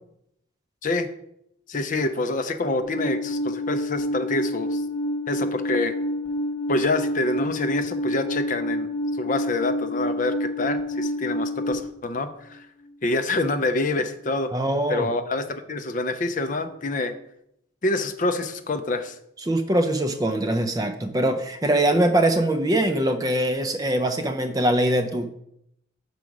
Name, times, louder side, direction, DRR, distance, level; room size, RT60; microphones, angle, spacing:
voice 1, 1.7-4.8 5.3-6.0 6.7-8.9 9.2-12.7 13.0-14.5 14.9-17.2 17.8-19.2, left 2 dB, 40° left, 8 dB, 0.5 m, -26 dB
Alarm, 2.8-11.7, left 1 dB, 65° left, 1.1 m, -28 dB
voice 2, 14.5-15.1 19.4-25.3, right 1 dB, 15° right, 7 dB, 0.4 m, -22 dB
6.0 x 4.7 x 5.2 m, 0.76 s
head